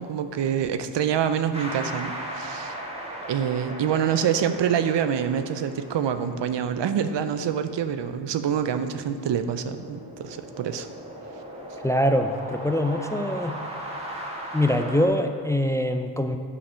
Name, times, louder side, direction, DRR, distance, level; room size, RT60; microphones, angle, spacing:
voice 1, 0.0-2.8 3.3-10.9, right 8 dB, 85° right, 10 dB, 0.6 m, -26 dB
sound 1, 1.5-15.1, right 1 dB, 15° right, 1.5 m, -38 dB
voice 2, 11.8-13.6 14.5-16.4, left 1 dB, 10° left, 7 dB, 0.3 m, -23 dB
9.6 x 5.7 x 5.6 m, 2.1 s
wide cardioid pair, 115°, 42 cm